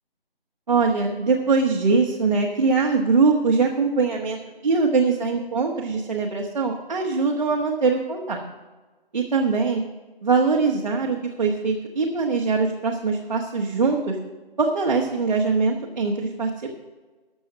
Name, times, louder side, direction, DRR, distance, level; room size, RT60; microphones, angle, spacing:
voice 1, 0.7-8.4 9.1-9.8 10.2-14.2 14.6-16.5, right 4 dB, 45° right, 0 dB, 1.3 m, -22 dB
13.0 x 6.9 x 6.0 m, 1.3 s
figure-of-eight pair, 165°, 30 cm